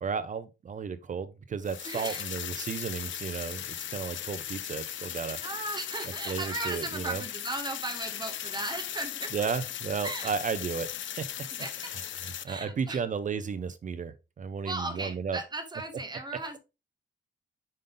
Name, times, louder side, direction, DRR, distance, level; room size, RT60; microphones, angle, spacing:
voice 1, 0.0-5.4 6.3-7.2 9.3-10.9 11.2-11.3 12.2-15.4, right 6 dB, 40° right, 0.5 m, -33 dB
sound 1, 1.6-12.4, left 11 dB, 85° left, 0.6 m, -38 dB
voice 2, 1.8-2.2 5.4-9.3 10.0-10.3 11.4-11.9 12.4-13.0 14.6-16.6, right 2 dB, 20° right, 1.2 m, -36 dB
5.5 x 5.3 x 3.7 m
wide cardioid pair, 140°, 19 cm